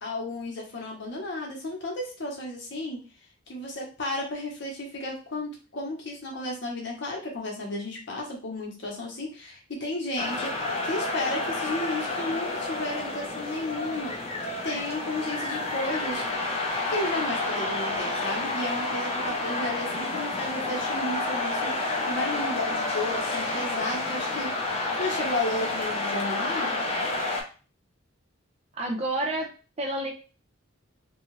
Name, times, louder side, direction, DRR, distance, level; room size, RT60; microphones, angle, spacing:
voice 1, 0.0-3.0 3.5-10.5 10.8-14.2 14.6-16.2 16.9-24.5 25.0-26.8, left 2 dB, 55° left, -1 dB, 0.9 m, -33 dB
sound 1, 10.2-27.4, left 2 dB, 30° left, 0.5 m, -30 dB
voice 2, 28.7-29.5 29.8-30.1, right 1 dB, 30° right, 2 dB, 0.5 m, -29 dB
2.7 x 2.3 x 3.0 m, 0.35 s
head